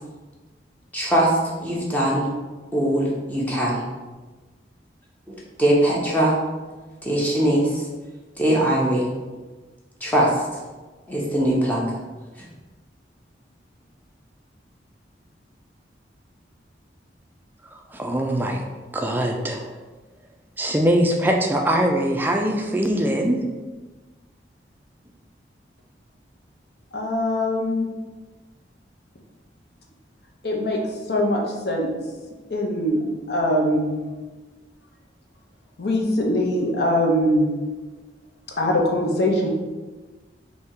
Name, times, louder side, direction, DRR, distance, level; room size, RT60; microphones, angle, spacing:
voice 1, 0.9-2.3 2.7-3.8 5.6-6.3 7.0-7.8 8.4-9.1 10.0-10.3 11.1-11.8, right 1 dB, 10° left, -4 dB, 0.7 m, -21 dB
voice 2, 17.7-18.6 18.9-19.7 20.6-23.4, right 1 dB, 10° right, 2 dB, 0.4 m, -22 dB
voice 3, 26.9-27.9 30.4-30.8 31.1-31.9 32.5-33.0 33.3-33.9 35.8-37.5 38.6-39.5, left 1 dB, 60° left, 0 dB, 0.7 m, -22 dB
3.4 x 2.8 x 4.5 m, 1.3 s
head